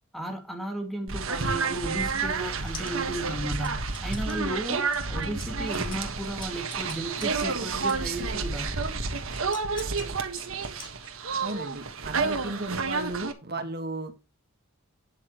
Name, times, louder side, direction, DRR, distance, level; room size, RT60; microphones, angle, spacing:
voice 1, 0.1-8.8, right 1 dB, ahead, 2.2 m, -35 dB
sound 1, 1.1-13.3, right 4 dB, 75° right, 1.6 m, -30 dB
sound 2, 1.9-8.1 8.8-11.4, left 4 dB, 25° left, 2.5 m, -47 dB
voice 2, 11.4-14.1, right 2 dB, 50° right, 1.7 m, -34 dB
12.5 x 8.1 x 3.1 m
head